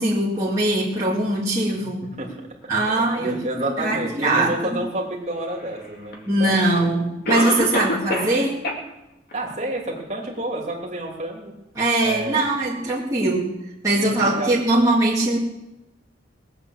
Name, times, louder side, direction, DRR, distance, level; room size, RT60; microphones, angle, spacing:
voice 1, 0.0-2.1 2.7-3.5 3.8-4.8 6.3-8.6 11.8-13.5 13.8-15.4, right 2 dB, 15° right, -8 dB, 2.5 m, -21 dB
voice 2, 1.8-2.5 3.1-6.9 7.7-7.9 9.3-11.5 12.0-12.5 13.2-13.3 14.0-14.9, right 1 dB, 35° right, -1 dB, 3.1 m, -30 dB
Cough, 6.1-6.2 7.3-8.4 8.6-8.8 9.3-9.4 10.0-10.1, left 1 dB, 50° left, 2.7 m, -24 dB
20.0 x 8.4 x 7.5 m, 0.95 s
head